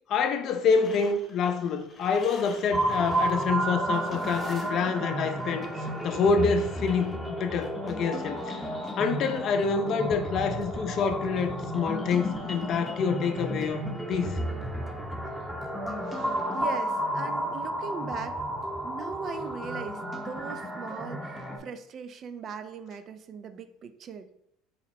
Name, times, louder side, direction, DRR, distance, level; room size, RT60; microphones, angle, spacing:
voice 1, 0.1-5.7 6.0-8.6 9.0-13.8 14.1-14.4, left 5 dB, 50° left, 0.5 m, -27 dB
sound 1, 0.7-7.1, left 2 dB, 20° left, 0.9 m, -49 dB
sound 2, 2.7-21.6, right 1 dB, 5° right, 0.7 m, -32 dB
voice 2, 16.5-18.4 18.8-24.3, right 6 dB, 45° right, 0.3 m, -39 dB
4.1 x 2.0 x 4.1 m
supercardioid pair, 95°, 0 cm